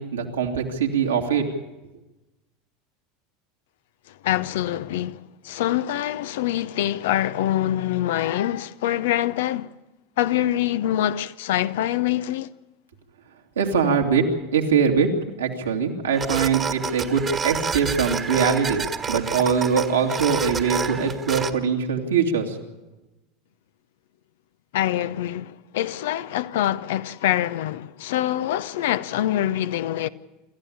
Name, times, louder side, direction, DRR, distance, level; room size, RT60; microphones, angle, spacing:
voice 1, 0.0-1.4 13.6-14.2 14.5-15.1 15.4-18.8 19.1-22.6, right 6 dB, 85° right, 2.6 m, -22 dB
voice 2, 4.2-9.7 10.2-12.5 24.7-30.1, left 12 dB, 70° left, 0.7 m, -25 dB
sound 1, 16.1-21.5, right 6 dB, 30° right, 1.5 m, -29 dB
27.0 x 13.5 x 8.7 m
hypercardioid pair, 80°, 0 cm